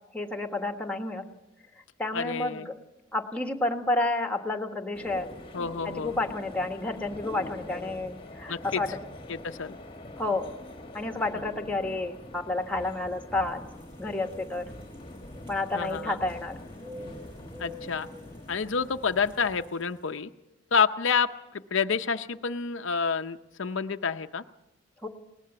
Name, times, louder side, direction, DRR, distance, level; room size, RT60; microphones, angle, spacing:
voice 1, 0.1-1.2 2.0-2.7 3.1-5.3 5.8-9.0 10.2-10.5 10.9-13.7 14.0-14.6 15.5-16.5 25.0-25.1, left 2 dB, 5° left, 5 dB, 1.4 m, -30 dB
voice 2, 2.1-2.7 5.5-6.2 8.5-8.8 9.3-9.8 15.7-16.2 17.6-18.1 18.5-20.3 20.7-24.4, left 5 dB, 65° left, 8 dB, 0.6 m, -28 dB
sound 1, 4.9-19.6, left 1 dB, 25° left, 1.3 m, -44 dB
sound 2, 13.4-20.1, left 1 dB, 20° right, 7.8 m, -48 dB
20.5 x 19.0 x 6.9 m, 0.91 s
head